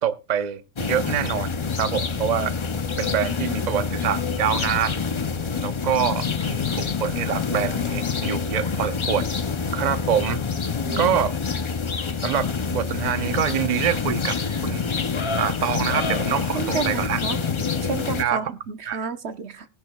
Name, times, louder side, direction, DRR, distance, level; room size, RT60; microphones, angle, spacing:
voice 1, 0.0-2.5 2.9-5.0 5.6-9.3 9.7-10.4 11.0-11.3 12.2-14.9 15.4-17.4 18.2-18.5 18.9-19.0, right 9 dB, 40° right, 0.8 m, -25 dB
sound 1, 0.8-18.2, left 5 dB, 45° left, 0.4 m, -27 dB
voice 2, 10.9-11.2 16.5-17.4 17.8-19.7, right 6 dB, 60° right, 1.0 m, -31 dB
20.0 x 10.5 x 2.2 m
omnidirectional pair, 1.3 m